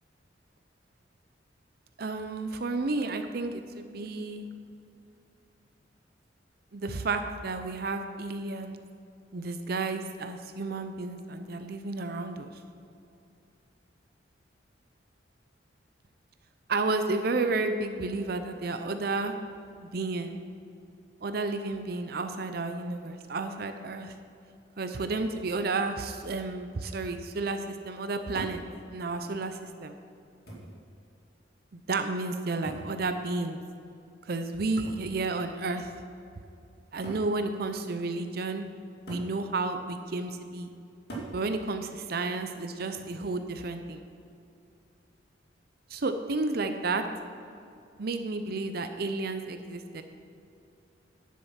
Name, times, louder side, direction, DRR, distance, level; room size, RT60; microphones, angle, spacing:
voice 1, 2.0-4.5 6.7-8.8 9.3-12.5 16.7-19.3 19.8-20.4 21.2-24.1 24.8-28.6 28.9-30.0 31.9-33.6 34.3-35.9 36.9-38.7 39.1-40.7 41.3-44.0 45.9-47.0 48.0-50.0, right 3 dB, 55° right, 7 dB, 0.6 m, -32 dB
sound 1, 28.4-28.7 29.7-29.8 30.5-30.8 32.6-33.0 34.8-35.1 36.2-36.3 37.0-37.3 39.1-39.4 41.1-41.4 42.9-43.3, right 2 dB, 55° left, 2.2 m, -41 dB
10.5 x 7.5 x 5.7 m, 2.5 s
head